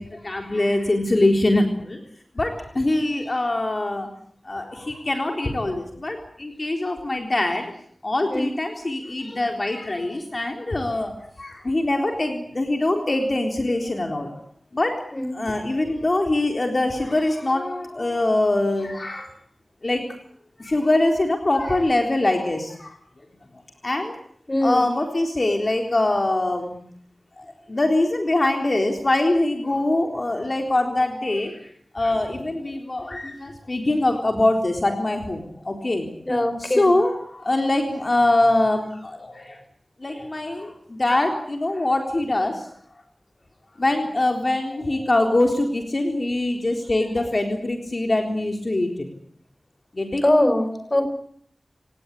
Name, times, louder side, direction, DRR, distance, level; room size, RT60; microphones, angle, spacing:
voice 1, 0.0-2.0 2.4-4.1 4.4-7.7 8.0-14.3 14.7-15.0 15.3-19.3 19.8-20.0 20.6-23.0 23.8-24.1 24.6-26.8 27.4-31.6 31.9-36.1 36.6-39.6 40.0-42.7 43.8-49.1 49.9-50.2, left 2 dB, 45° left, 3 dB, 3.8 m, -23 dB
voice 2, 24.5-24.8 36.2-36.9 50.2-51.1, left 1 dB, 30° left, 8 dB, 4.9 m, -21 dB
29.0 x 18.0 x 8.4 m, 0.66 s
wide cardioid pair, 70°, 0 cm